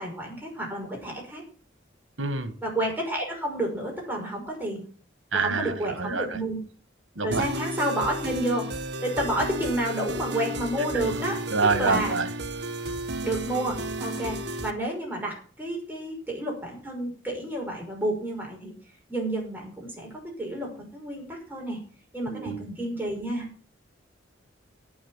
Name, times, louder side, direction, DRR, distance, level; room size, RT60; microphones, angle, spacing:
voice 1, 0.0-1.4 2.6-4.8 5.3-6.6 7.2-8.7 9.0-11.4 11.8-12.2 13.2-18.7 19.1-20.1 20.4-21.8 22.1-23.5, right 1 dB, 10° right, -1 dB, 5.7 m, -30 dB
voice 2, 2.2-2.5 5.3-6.3 7.2-7.5 11.5-12.3 22.3-22.6, right 4 dB, 80° right, 11 dB, 1.8 m, -26 dB
sound 1, 7.3-14.7, right 1 dB, 60° right, 1.3 m, -33 dB
12.0 x 8.8 x 7.4 m, 0.42 s
head